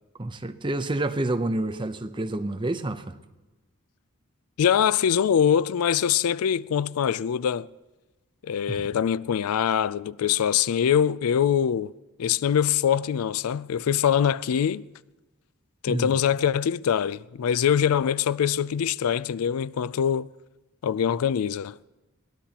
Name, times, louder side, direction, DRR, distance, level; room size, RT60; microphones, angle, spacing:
voice 1, 0.2-3.1 8.7-8.9 15.9-16.1, right 2 dB, 20° right, 0.6 m, -28 dB
voice 2, 4.6-7.7 8.4-11.9 12.2-14.8 15.8-20.3 20.8-21.7, left 8 dB, 90° left, 0.4 m, -23 dB
22.5 x 18.0 x 2.9 m
head